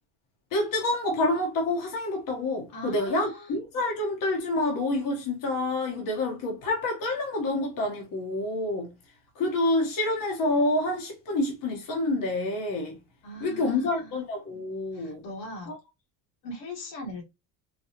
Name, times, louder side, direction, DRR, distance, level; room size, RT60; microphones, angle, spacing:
voice 1, 0.5-8.9 9.4-13.0 13.4-15.2, left 2 dB, 50° left, 1.1 m, -28 dB
voice 2, 2.7-3.5 13.2-14.2 14.9-15.7 16.4-17.2, left 1 dB, 75° left, 1.7 m, -40 dB
4.1 x 2.3 x 2.8 m
cardioid pair, 115°, 44 cm